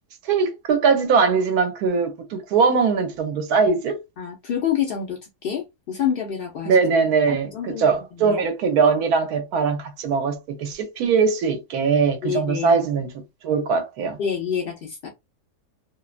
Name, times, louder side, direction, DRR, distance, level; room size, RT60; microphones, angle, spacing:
voice 1, 0.2-4.0 6.7-14.2, right 5 dB, 75° right, 1.1 m, -21 dB
voice 2, 4.2-6.8 7.3-7.8 8.2-8.4 12.2-12.8 14.2-15.1, left 8 dB, 80° left, 0.5 m, -27 dB
2.8 x 2.1 x 2.4 m
omnidirectional pair, 1.7 m